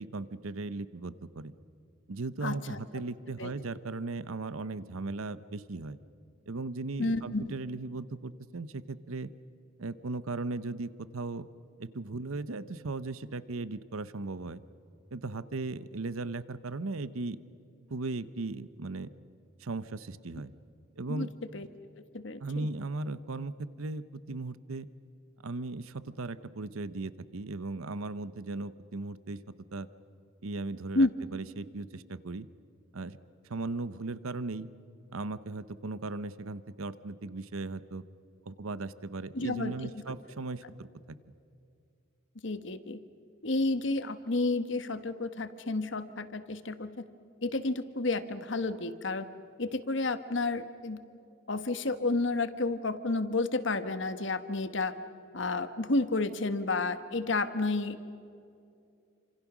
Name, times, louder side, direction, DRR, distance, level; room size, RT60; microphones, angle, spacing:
voice 1, 0.0-1.5 2.1-6.0 6.5-9.3 9.8-11.5 11.8-14.6 15.1-17.4 17.9-19.1 19.6-20.5 21.0-21.3 22.4-24.9 25.4-29.4 29.7-29.9 30.4-32.5 32.9-33.2 33.5-34.7 35.1-38.0 38.5-41.2, right 3 dB, 90° right, 15 dB, 0.8 m, -37 dB
voice 2, 2.4-3.1 3.4-3.5 7.0-7.4 21.1-21.3 21.5-21.7 22.1-22.7 30.9-31.1 39.3-39.7 42.4-43.0 43.4-46.9 47.4-49.3 49.6-51.0 51.5-54.9 55.3-58.0, left 2 dB, 60° left, 11 dB, 1.3 m, -31 dB
28.5 x 26.5 x 6.2 m, 2.5 s
head